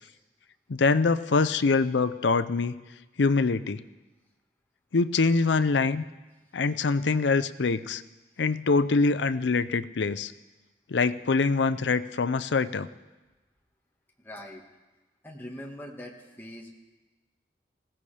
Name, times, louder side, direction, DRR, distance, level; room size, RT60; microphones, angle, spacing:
voice 1, 0.7-2.7 3.2-3.8 4.9-6.0 6.5-8.0 8.4-10.3 10.9-12.9, left 4 dB, 90° left, 14 dB, 0.6 m, -24 dB
voice 2, 14.2-14.6 15.2-16.7, left 1 dB, 10° left, -1 dB, 1.6 m, -42 dB
20.0 x 16.0 x 3.4 m, 1.1 s
head